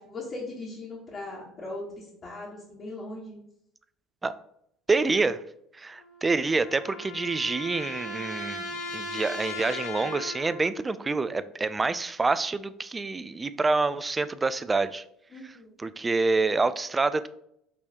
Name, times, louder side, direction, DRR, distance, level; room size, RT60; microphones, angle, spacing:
voice 1, 0.0-3.4 15.3-15.7, left 2 dB, 40° left, -5 dB, 1.4 m, -39 dB
voice 2, 4.9-5.4 5.7-15.0 15.4-15.5 15.8-17.3, right 3 dB, 20° right, 14 dB, 0.3 m, -27 dB
sound 1, 6.0-10.8, left 2 dB, 70° left, 1.1 m, -37 dB
5.2 x 3.1 x 2.9 m, 0.74 s
hypercardioid pair, 65°, 0 cm